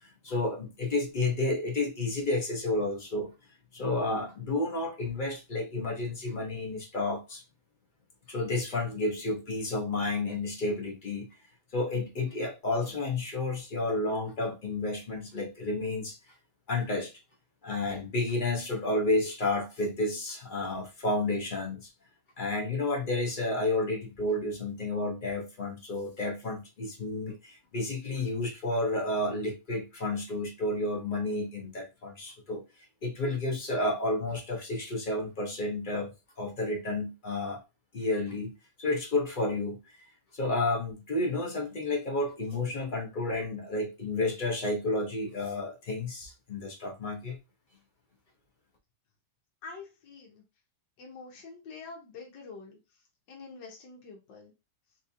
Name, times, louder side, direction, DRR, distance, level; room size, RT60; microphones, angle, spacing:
voice 1, 0.0-3.3 3.7-7.4 8.3-11.3 11.7-16.2 16.7-17.1 17.6-21.9 22.4-32.6 33.0-36.1 36.4-37.6 37.9-38.5 38.8-39.8 40.3-47.4, left 2 dB, 45° left, 0.6 m, -31 dB
voice 2, 49.6-50.4 51.0-52.8 53.3-54.5, left 4 dB, 85° left, 1.6 m, -46 dB
4.0 x 2.5 x 2.7 m
omnidirectional pair, 1.9 m